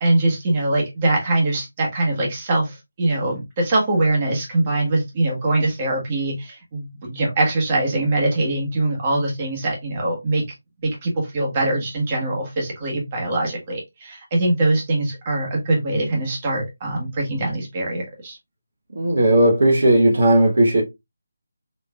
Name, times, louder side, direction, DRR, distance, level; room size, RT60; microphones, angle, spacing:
voice 1, 0.0-10.4 11.0-18.4, right 2 dB, 25° right, 1.4 m, -22 dB
voice 2, 18.9-20.8, right 1 dB, 55° right, 1.1 m, -16 dB
4.2 x 3.1 x 2.4 m
figure-of-eight pair, 155°, 0 cm